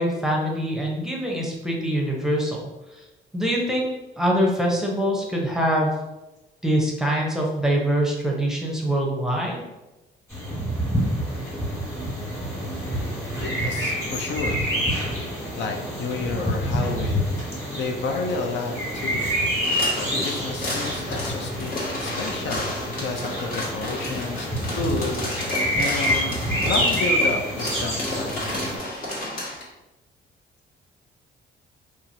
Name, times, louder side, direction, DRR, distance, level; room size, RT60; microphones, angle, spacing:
voice 1, 0.0-2.6 2.9-3.0 3.3-6.0 6.6-9.6, equal, ahead, -2 dB, 0.7 m, -24 dB
sound 1, 10.3-28.8, equal, 15° left, 1.5 m, -27 dB
voice 2, 13.4-14.6 15.6-17.3 17.7-19.3 20.0-28.7, left 3 dB, 65° left, 3 dB, 0.4 m, -31 dB
sound 2, 19.6-29.6, left 1 dB, 45° left, 1.2 m, -32 dB
2.8 x 2.3 x 2.6 m, 1.0 s
cardioid pair, 90°, 20 cm